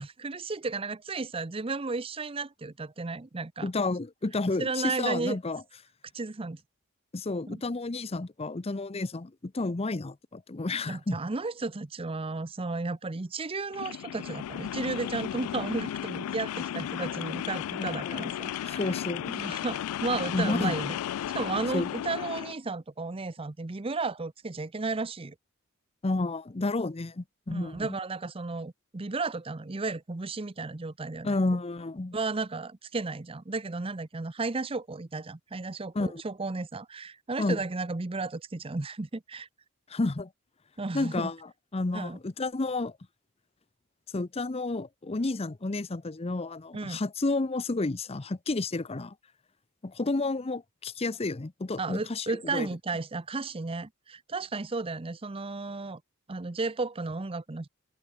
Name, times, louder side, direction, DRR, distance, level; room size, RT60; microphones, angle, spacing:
voice 1, 0.0-3.7 4.6-5.4 6.1-6.6 7.5-7.6 10.9-18.9 19.3-21.0 21.3-25.3 27.5-31.3 32.1-39.5 40.8-41.3 41.9-42.2 46.7-47.0 51.8-56.0 56.3-57.7, right 3 dB, 25° right, 0.6 m, -34 dB
voice 2, 3.6-5.6 7.1-11.2 17.8-18.3 18.7-19.3 20.3-20.8 21.7-21.9 26.0-27.9 31.2-32.2 35.9-36.2 37.4-37.6 39.9-40.3 40.9-41.4 41.7-42.9 44.1-49.1 49.8-52.7, left 2 dB, 25° left, 0.6 m, -31 dB
sound 1, 13.7-22.6, left 10 dB, 80° left, 0.3 m, -34 dB
head